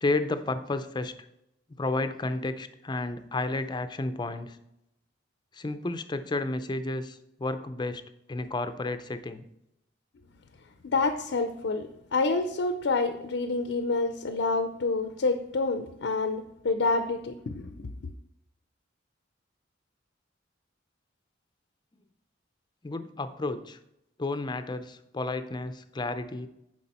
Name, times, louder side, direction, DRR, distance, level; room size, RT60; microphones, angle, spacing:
voice 1, 0.0-1.1 1.8-4.6 5.5-8.0 8.3-9.4 22.8-23.8 24.2-26.5, left 2 dB, 25° left, 10 dB, 0.5 m, -31 dB
voice 2, 10.8-17.9, left 3 dB, 75° left, 9 dB, 0.5 m, -28 dB
11.0 x 4.8 x 4.2 m, 0.83 s
head